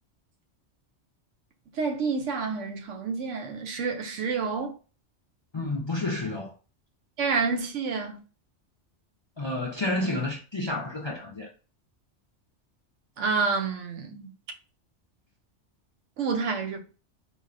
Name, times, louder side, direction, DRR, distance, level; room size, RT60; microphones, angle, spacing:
voice 1, 1.7-4.8 7.2-8.2 13.2-14.3 16.2-16.8, right 5 dB, 90° right, 1.0 m, -28 dB
voice 2, 5.5-6.5 9.4-11.5, left 2 dB, 45° left, 0.3 m, -30 dB
4.0 x 2.1 x 2.5 m
omnidirectional pair, 1.2 m